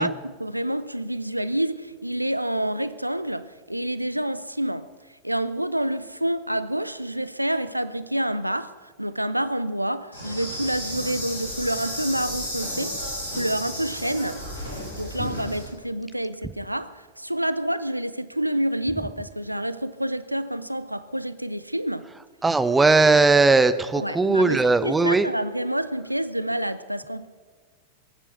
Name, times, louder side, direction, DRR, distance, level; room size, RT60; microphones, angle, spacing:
voice 1, 0.0-4.9 5.2-13.0 13.3-14.4 14.9-22.1 24.0-27.3, right 1 dB, 90° right, 0.5 m, -28 dB
Insect, 10.1-15.6, equal, 80° left, 6.6 m, -33 dB
voice 2, 22.4-25.3, right 3 dB, 10° right, 0.8 m, -18 dB
22.5 x 9.1 x 6.4 m
figure-of-eight pair, 90°, 0 cm